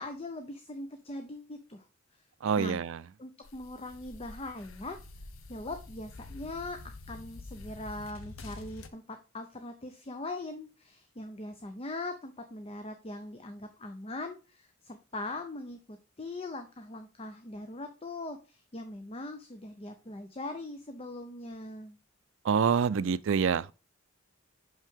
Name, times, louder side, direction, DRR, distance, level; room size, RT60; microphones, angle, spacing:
voice 1, 0.0-1.9 2.6-2.8 3.2-5.0 5.5-22.0, left 2 dB, 30° left, 0.6 m, -41 dB
voice 2, 2.4-3.0 22.4-23.7, right 6 dB, 65° right, 0.4 m, -26 dB
sound 1, 3.4-8.9, left 2 dB, 75° left, 0.7 m, -47 dB
5.8 x 5.5 x 3.6 m
head